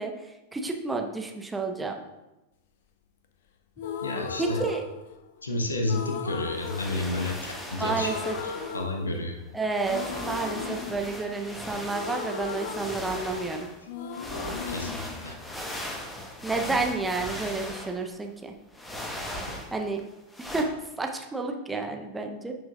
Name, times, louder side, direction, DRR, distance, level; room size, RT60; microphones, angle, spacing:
voice 1, 0.0-1.9 4.4-4.8 7.8-8.3 9.5-13.7 16.4-18.5 19.7-20.0 20.4-20.7 21.0-22.5, right 3 dB, 10° right, 3 dB, 0.8 m, -30 dB
sound 1, 3.8-5.4 5.9-7.6 7.9-9.5 9.9-13.6 13.9-15.9, left 6 dB, 55° left, 0.7 m, -37 dB
voice 2, 4.0-4.6 5.4-8.1 8.4-9.3 14.7-15.4, left 2 dB, 75° left, 2 dB, 1.0 m, -31 dB
sound 2, 6.5-8.8 9.7-13.8 14.1-18.2 18.7-20.0 20.3-20.6, left 1 dB, 10° left, 1.3 m, -38 dB
10.5 x 6.1 x 2.5 m, 1.0 s
figure-of-eight pair, 90°, 0 cm